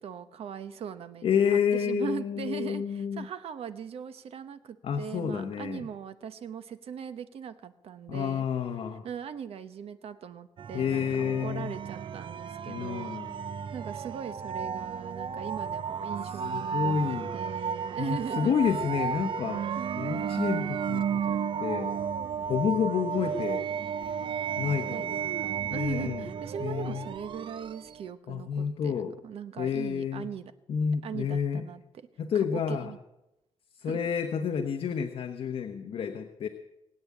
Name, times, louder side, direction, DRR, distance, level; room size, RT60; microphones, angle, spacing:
voice 1, 0.0-8.5 9.0-13.3 13.7-18.6 19.8-20.6 24.9-30.5 31.0-32.1 32.3-33.0 33.8-34.0, right 7 dB, 70° right, 11 dB, 1.0 m, -40 dB
voice 2, 1.2-3.3 4.8-5.8 8.1-9.0 10.7-11.7 12.7-13.3 16.4-17.3 18.0-19.6 20.0-21.9 22.5-23.6 24.6-25.1 25.7-26.2 26.6-27.1 28.3-29.1 29.6-30.3 30.7-31.7 32.2-32.9 33.8-36.5, left 7 dB, 65° left, 5 dB, 1.1 m, -29 dB
sound 1, 10.6-28.1, right 7 dB, 55° right, 0.6 m, -33 dB
20.0 x 8.7 x 8.4 m, 0.92 s
wide cardioid pair, 165°, 10 cm